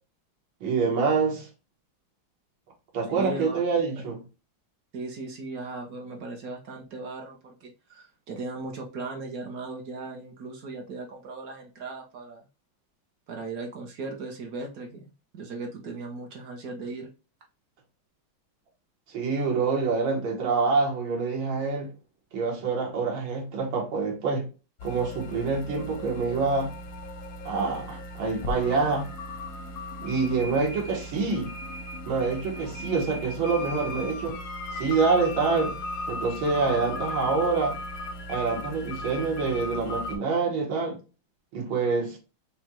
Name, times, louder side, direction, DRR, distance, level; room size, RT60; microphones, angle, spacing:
voice 1, 0.6-1.5 2.9-4.2 19.1-21.9 22.3-24.5 24.8-26.7 27.5-29.1 30.0-31.5 32.1-34.4 34.7-35.8 36.1-37.8 38.3-41.0 41.5-42.2, right 4 dB, 80° right, 2.0 m, -26 dB
voice 2, 3.1-3.6 4.0-4.1 4.9-12.4 13.3-15.0 15.3-17.1, right 3 dB, 60° right, 1.0 m, -37 dB
sound 1, 24.8-40.2, left 1 dB, 65° left, 0.8 m, -37 dB
Wind instrument woodwind instrument, 33.4-37.8, left 6 dB, 90° left, 1.5 m, -41 dB
5.1 x 2.2 x 2.9 m
omnidirectional pair, 2.2 m